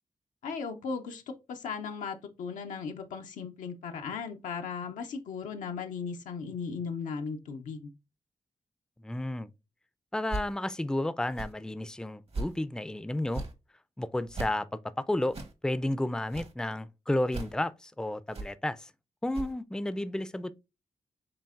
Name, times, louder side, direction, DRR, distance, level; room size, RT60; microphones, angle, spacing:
voice 1, 0.4-1.2 1.5-7.9, left 5 dB, 85° left, 0.7 m, -37 dB
voice 2, 9.0-9.5 10.1-13.4 14.0-15.4 15.6-18.9 19.2-20.5, left 1 dB, 5° left, 0.4 m, -32 dB
sound 1, 10.3-10.5 11.3-11.5 12.3-12.6 13.3-13.5 14.3-14.5 15.3-15.5 16.3-16.5 17.3-17.5 18.3-18.5 19.3-19.5, right 2 dB, 50° right, 1.1 m, -37 dB
7.0 x 2.7 x 2.4 m
supercardioid pair, 40°, 13 cm